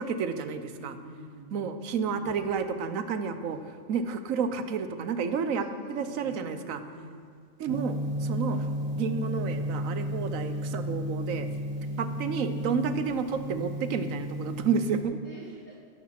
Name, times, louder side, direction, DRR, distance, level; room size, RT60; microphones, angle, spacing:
voice 1, 0.0-0.9 1.5-3.6 3.9-6.8 7.6-8.7 8.9-11.5 12.0-15.2, right 6 dB, 85° right, 9 dB, 1.2 m, -30 dB
voice 2, 0.7-2.5 5.3-5.4 5.7-7.2 11.7-12.7 15.2-15.8, right 1 dB, 75° left, -5 dB, 3.1 m, -47 dB
Gong, 7.7-15.0, equal, 35° right, 2.4 m, -33 dB
15.0 x 6.5 x 5.9 m, 2.1 s
omnidirectional pair, 1.4 m